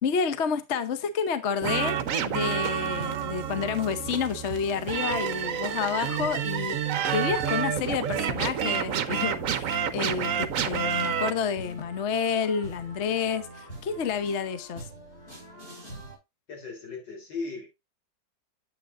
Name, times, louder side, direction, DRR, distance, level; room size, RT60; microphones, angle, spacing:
voice 1, 0.0-14.9, left 6 dB, 50° left, 0.9 m, -29 dB
sound 1, 1.6-11.3, right 8 dB, 60° right, 1.0 m, -29 dB
sound 2, 3.5-16.2, right 1 dB, 30° left, 5.9 m, -46 dB
voice 2, 16.5-17.7, left 4 dB, 70° left, 4.0 m, -36 dB
9.0 x 8.3 x 2.5 m
omnidirectional pair, 1.9 m